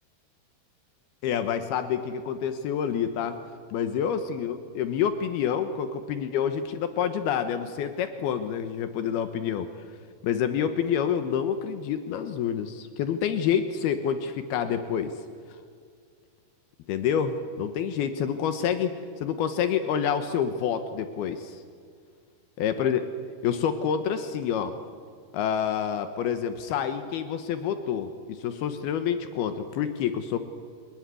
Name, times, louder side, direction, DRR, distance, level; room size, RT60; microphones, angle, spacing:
voice 1, 1.2-3.4 3.7-9.7 10.2-15.1 16.9-21.6 22.6-23.0 23.4-24.7 25.3-30.4, left 8 dB, 80° left, 9 dB, 3.0 m, -28 dB
28.5 x 18.5 x 10.0 m, 2.1 s
omnidirectional pair, 4.6 m